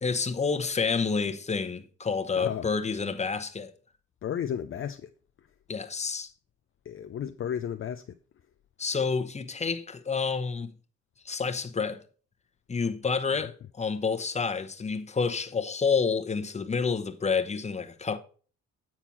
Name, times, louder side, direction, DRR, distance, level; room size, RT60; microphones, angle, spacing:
voice 1, 0.0-3.7 5.7-6.3 8.8-10.7 11.2-12.0 12.7-18.2, left 5 dB, 20° left, 0.9 m, -29 dB
voice 2, 2.4-2.7 4.2-5.1 5.4-5.5 6.8-8.2, left 9 dB, 45° left, 0.5 m, -33 dB
8.6 x 4.5 x 5.7 m
cardioid pair, 90°, 30 cm